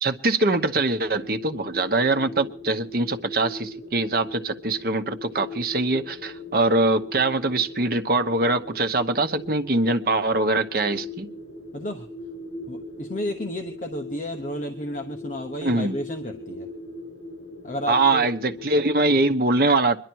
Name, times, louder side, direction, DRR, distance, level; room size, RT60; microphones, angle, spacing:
voice 1, 0.0-11.3 15.6-15.9 17.9-20.0, right 2 dB, 55° right, 7 dB, 0.9 m, -23 dB
sound 1, 0.6-19.3, left 2 dB, 70° left, 7.4 m, -39 dB
voice 2, 11.7-12.1 12.7-16.7 17.6-18.3, left 1 dB, 45° left, 4 dB, 1.0 m, -32 dB
23.5 x 11.5 x 4.6 m, 0.43 s
head